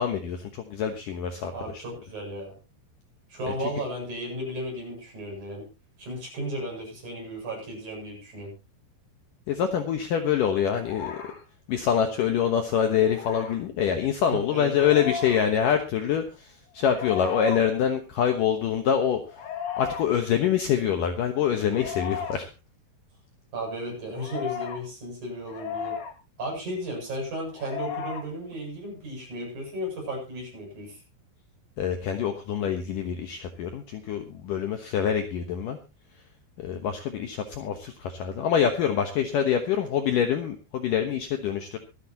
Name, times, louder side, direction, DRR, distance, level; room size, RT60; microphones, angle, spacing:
voice 1, 0.0-1.8 9.5-11.2 11.7-19.2 19.8-22.5 31.8-35.8 36.6-41.8, left 8 dB, 85° left, 6 dB, 1.9 m, -25 dB
voice 2, 1.5-2.5 3.3-5.7 6.0-8.5 14.3-15.0 23.5-26.0 26.4-31.0, equal, 40° right, -1 dB, 8.9 m, -34 dB
sound 1, 10.8-11.4 13.0-13.6 14.7-15.4 16.8-17.6 19.2-20.0 21.6-22.4 24.2-24.8 25.4-26.1 27.5-28.2, left 7 dB, 60° left, 3.8 m, -35 dB
24.5 x 9.9 x 2.9 m, 0.29 s
omnidirectional pair, 5.6 m